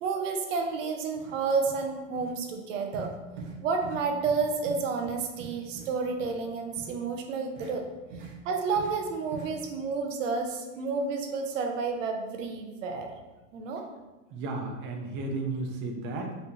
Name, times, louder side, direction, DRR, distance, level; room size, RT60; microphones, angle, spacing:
voice 1, 0.0-3.1 3.6-7.9 8.4-13.1 13.5-13.8, right 4 dB, 80° right, 4 dB, 0.8 m, -30 dB
sound 1, 0.7-0.8 1.1-1.4 1.7-1.9 2.2-2.3 2.9-3.1 3.4-3.6 3.8-4.0 4.3-4.4 4.7-5.9 6.2-6.3 6.8-6.9 7.6-7.7 8.1-8.3 8.8-8.9 9.3-9.5, right 5 dB, 50° right, 1.0 m, -42 dB
voice 2, 14.3-16.4, right 3 dB, 30° right, 3 dB, 0.6 m, -33 dB
4.1 x 3.2 x 2.8 m, 1.2 s
supercardioid pair, 145°, 38 cm